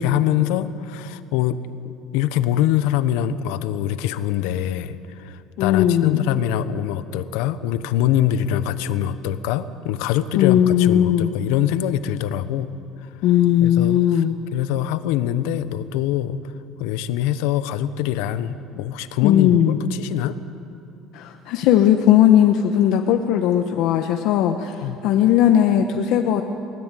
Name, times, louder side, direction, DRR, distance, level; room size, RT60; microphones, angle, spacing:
voice 1, 0.0-1.6 1.8-12.7 13.0-13.1 13.6-14.2 14.5-16.4 16.8-20.3 24.8-25.0, left 11 dB, 85° left, 12 dB, 1.0 m, -24 dB
voice 2, 5.6-6.2 10.3-11.3 13.2-14.4 19.2-19.8 21.1-26.4, left 10 dB, 65° left, 4 dB, 1.1 m, -17 dB
23.0 x 17.5 x 9.2 m, 2.6 s
cardioid pair, 140°, 0 cm